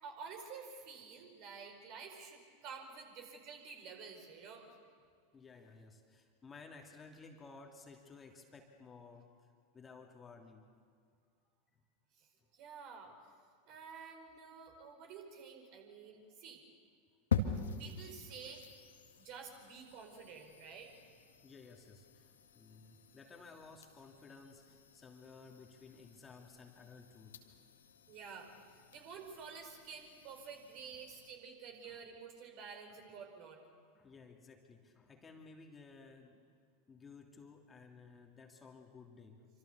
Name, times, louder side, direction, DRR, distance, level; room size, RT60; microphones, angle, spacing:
voice 1, 0.0-4.7 12.2-13.1 13.7-16.6 17.8-18.6 19.2-20.9 28.1-33.6, right 5 dB, 45° right, 4 dB, 5.1 m, -50 dB
voice 2, 5.3-9.5 9.7-10.7 21.4-27.4 31.8-32.0 32.9-33.0 33.9-36.4 36.9-39.5, left 4 dB, 20° left, 2 dB, 2.8 m, -56 dB
sound 1, 17.3-31.3, left 5 dB, 70° left, 2.1 m, -45 dB
27.0 x 26.0 x 6.9 m, 2.1 s
figure-of-eight pair, 85°, 0 cm